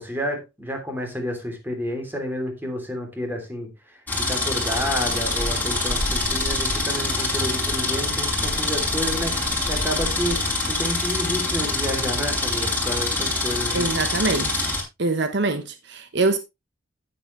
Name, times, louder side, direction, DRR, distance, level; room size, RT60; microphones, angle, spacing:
voice 1, 0.0-4.0 4.2-13.9, equal, 10° right, 3.0 m, -30 dB
sound 1, 4.1-14.8, left 2 dB, 10° left, 5.6 m, -25 dB
sound 2, 4.7-10.5, left 1 dB, 40° left, 1.5 m, -35 dB
voice 2, 13.7-14.7 15.0-16.4, right 3 dB, 65° right, 1.0 m, -24 dB
10.0 x 9.7 x 3.2 m
head